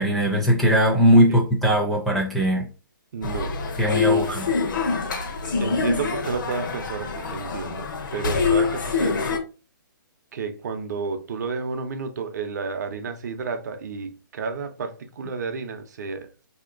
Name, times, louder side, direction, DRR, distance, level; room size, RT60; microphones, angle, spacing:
voice 1, 0.0-2.7 3.8-4.5, equal, ahead, 0.5 m, -19 dB
voice 2, 3.1-3.6 3.9-4.3 5.6-9.3 10.3-16.3, right 5 dB, 55° right, 0.6 m, -31 dB
sound 1, 3.2-9.4, left 5 dB, 65° left, 0.8 m, -25 dB
4.2 x 2.8 x 2.5 m
hypercardioid pair, 155°, 11 cm